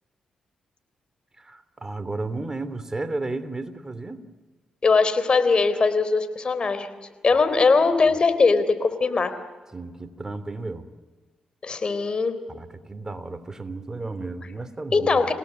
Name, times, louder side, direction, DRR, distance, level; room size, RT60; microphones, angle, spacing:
voice 1, 1.4-4.2 7.3-7.6 9.7-10.9 12.5-15.3, right 3 dB, 25° right, 11 dB, 3.2 m, -33 dB
voice 2, 4.8-6.9 7.2-9.3 11.6-12.4 14.9-15.3, left 4 dB, 45° left, 11 dB, 3.6 m, -20 dB
28.0 x 18.0 x 9.5 m, 1.4 s
supercardioid pair, 45°, 2 cm